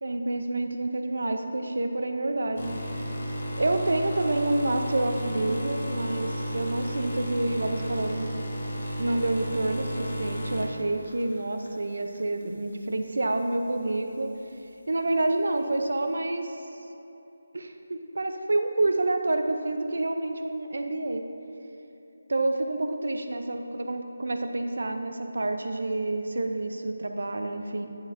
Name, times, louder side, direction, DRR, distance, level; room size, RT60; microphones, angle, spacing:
voice 1, 0.0-2.8 3.6-8.3 9.0-14.3 14.9-16.5 17.5-21.2 22.3-27.9, right 2 dB, 75° right, 6 dB, 0.5 m, -28 dB
sound 1, 2.6-11.7 12.1-12.4 13.3-13.4, equal, 55° left, 0.9 m, -33 dB
9.8 x 5.0 x 2.6 m, 2.9 s
figure-of-eight pair, 170°, 0 cm